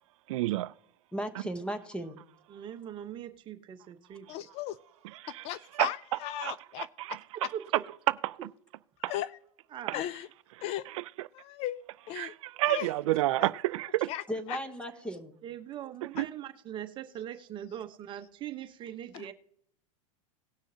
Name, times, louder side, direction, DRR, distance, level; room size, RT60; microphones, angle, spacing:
voice 1, 0.3-0.7 5.2-5.4 5.8-5.9 6.4-7.2 8.2-8.4 9.0-9.1 10.9-11.0 12.2-14.1 16.2-16.3, right 17 dB, 70° right, 0.4 m, -29 dB
voice 2, 1.1-2.2 14.3-15.4, equal, 5° left, 1.0 m, -36 dB
voice 3, 2.5-4.3 7.5-7.8 9.7-10.0 15.4-19.3, right 10 dB, 30° right, 0.9 m, -41 dB
voice 4, 4.3-4.8 5.4-6.9 9.0-9.3 9.9-10.3 10.6-10.8 11.3-11.8 12.1-12.3 12.6-12.9 13.3-13.5 14.1-14.6 19.1-19.3, left 12 dB, 35° left, 0.4 m, -36 dB
19.0 x 6.3 x 2.8 m
supercardioid pair, 140°, 17 cm